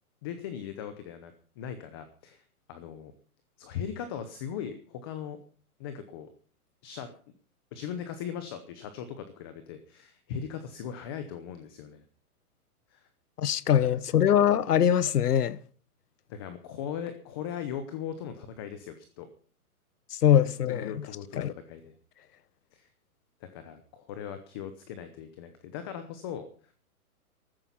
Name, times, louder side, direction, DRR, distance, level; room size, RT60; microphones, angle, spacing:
voice 1, 0.2-3.1 3.6-5.4 5.8-6.3 6.8-7.1 7.7-12.0 12.9-13.1 13.6-14.3 16.3-19.3 20.3-21.9 22.7-22.9 23.4-26.5, left 8 dB, 15° left, 0.8 m, -39 dB
voice 2, 13.4-15.6 20.2-20.9 21.4-21.5, left 9 dB, 90° left, 1.1 m, -22 dB
14.0 x 14.0 x 5.6 m
hypercardioid pair, 165°, 45 cm